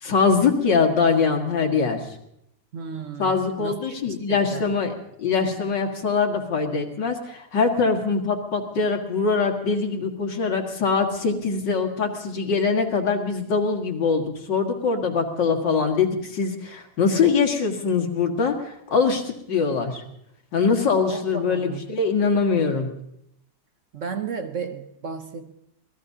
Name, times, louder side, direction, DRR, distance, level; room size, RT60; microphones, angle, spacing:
voice 1, 0.0-2.2 3.2-4.9 5.2-20.0 20.5-22.9, left 5 dB, 90° left, 3 dB, 2.4 m, -23 dB
voice 2, 2.7-4.7 21.1-21.8 23.9-25.5, right 5 dB, 55° right, 7 dB, 1.1 m, -34 dB
26.5 x 18.5 x 2.8 m, 0.77 s
omnidirectional pair, 1.9 m